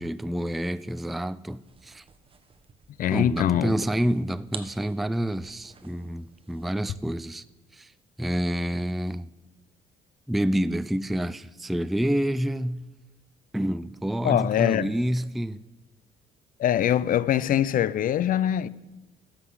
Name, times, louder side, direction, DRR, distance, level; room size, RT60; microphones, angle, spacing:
voice 1, 0.0-2.0 3.1-7.4 7.7-7.9 8.2-9.3 10.3-12.9 13.5-15.6, right 1 dB, ahead, 0.3 m, -28 dB
sound 1, 1.5-6.9, right 5 dB, 35° right, 1.1 m, -48 dB
voice 2, 3.0-3.7 14.2-14.9 16.6-18.7, left 10 dB, 55° left, 0.5 m, -23 dB
13.0 x 5.9 x 7.9 m
cardioid pair, 80°, 17 cm